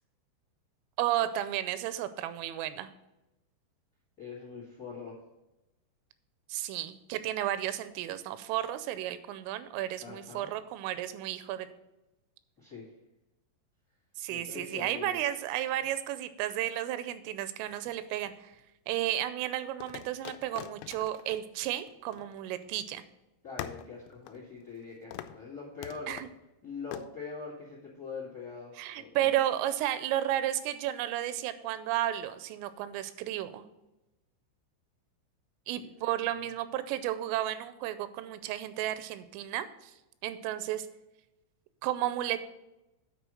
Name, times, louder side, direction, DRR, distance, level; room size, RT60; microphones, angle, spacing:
voice 1, 1.0-2.9 6.5-11.7 14.2-18.5 18.9-23.0 26.1-26.3 28.8-33.7 35.7-39.9 40.2-40.9 41.8-42.4, right 13 dB, 85° right, 12 dB, 3.1 m, -33 dB
voice 2, 4.2-5.2 10.0-10.5 12.6-12.9 14.3-15.2 23.4-26.1 26.6-29.1 35.8-35.9, left 5 dB, 60° left, -2 dB, 0.8 m, -43 dB
sound 1, 17.7-18.6 19.8-22.8 23.0-23.1 23.6-24.8 25.1-25.4 25.8-26.4 26.9-27.1, left 13 dB, 85° left, 2.9 m, -44 dB
9.2 x 4.7 x 6.3 m, 0.96 s
omnidirectional pair, 5.7 m